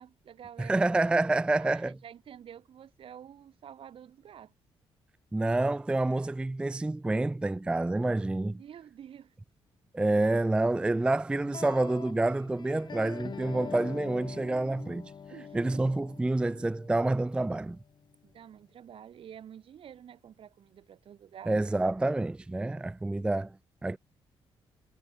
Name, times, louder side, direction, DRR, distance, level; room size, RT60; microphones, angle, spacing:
voice 1, 0.0-0.8 1.6-4.5 8.5-9.3 15.3-15.6 18.2-21.5, right 9 dB, 65° right, 2.0 m, -49 dB
voice 2, 0.6-2.0 5.3-8.6 9.9-15.1 15.5-17.8 21.5-23.6 23.8-24.0, right 2 dB, 10° right, 0.3 m, -28 dB
sound 1, 11.3-18.3, left 6 dB, 45° left, 2.0 m, -45 dB
cardioid pair, 85°, 10 cm